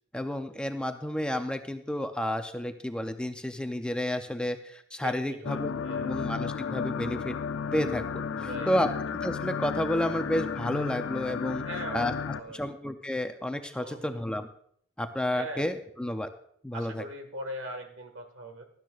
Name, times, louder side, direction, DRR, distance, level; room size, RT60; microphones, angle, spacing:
voice 1, 0.1-5.7 6.0-7.4 7.7-8.9 9.2-11.6 11.9-12.1 12.5-14.5 15.0-16.3 16.6-17.0, left 1 dB, 5° left, 7 dB, 0.5 m, -31 dB
voice 2, 5.0-6.1 8.4-9.0 11.6-12.7 13.8-14.2 15.3-15.7 16.7-18.6, right 1 dB, 65° right, 5 dB, 1.7 m, -41 dB
sound 1, 5.4-12.4, left 6 dB, 65° left, 0.5 m, -33 dB
16.5 x 12.0 x 2.4 m, 0.64 s
head